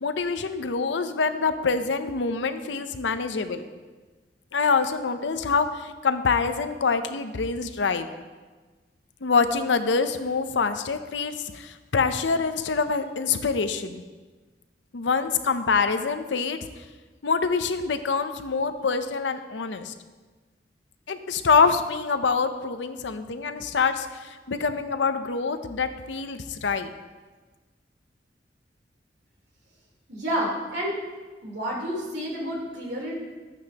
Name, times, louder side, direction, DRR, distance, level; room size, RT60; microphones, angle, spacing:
voice 1, 0.0-3.7 4.5-8.1 9.2-14.0 14.9-16.6 17.2-19.9 21.1-26.9, left 5 dB, 90° left, 9 dB, 0.6 m, -25 dB
voice 2, 30.1-31.0 31.4-33.2, equal, 65° right, -4 dB, 3.5 m, -29 dB
13.5 x 9.0 x 2.9 m, 1.3 s
head